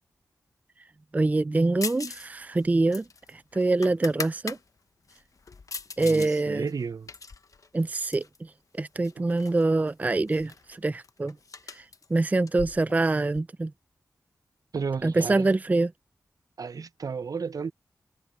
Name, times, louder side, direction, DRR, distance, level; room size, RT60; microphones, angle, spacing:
voice 1, 1.1-3.0 3.5-4.6 6.0-6.7 7.7-8.2 8.8-11.3 11.8-11.9 12.1-13.7 15.0-15.9, right 2 dB, 20° right, 0.4 m, -25 dB
sound 1, 1.8-2.3 2.5-4.6 5.1-6.3 6.7-8.4 9.0-9.6 9.9-10.0 10.3-13.4, left 4 dB, 55° left, 0.9 m, -40 dB
voice 2, 6.0-7.1 9.2-9.3 14.7-15.5 16.6-17.7, right 5 dB, 60° right, 0.6 m, -33 dB
wide cardioid pair, 75°, 7 cm